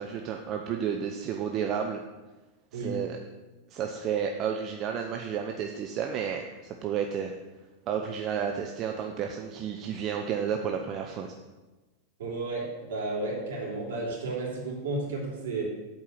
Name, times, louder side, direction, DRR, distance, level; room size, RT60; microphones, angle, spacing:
voice 1, 0.0-2.0 2.7-3.2 3.7-7.4 7.9-11.3, right 7 dB, 40° right, 3 dB, 0.7 m, -31 dB
voice 2, 12.2-15.6, right 2 dB, 65° right, -4 dB, 3.2 m, -32 dB
8.4 x 4.6 x 7.3 m, 1.2 s
figure-of-eight pair, 90°, 0 cm